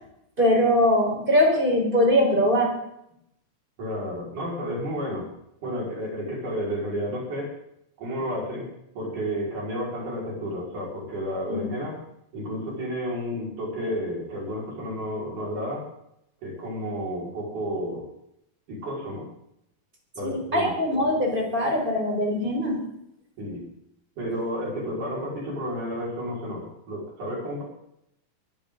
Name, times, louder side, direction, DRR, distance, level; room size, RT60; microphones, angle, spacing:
voice 1, 0.4-2.7 11.5-11.7 20.2-22.8, left 1 dB, 15° right, 0 dB, 4.7 m, -22 dB
voice 2, 3.8-5.3 5.6-7.5 8.0-8.7 9.0-12.0 12.3-15.9 16.4-18.1 18.7-19.3 20.2-20.8 23.4-23.6 24.2-27.6, equal, 55° right, -3 dB, 6.8 m, -31 dB
22.5 x 14.0 x 4.0 m, 0.78 s
omnidirectional pair, 4.2 m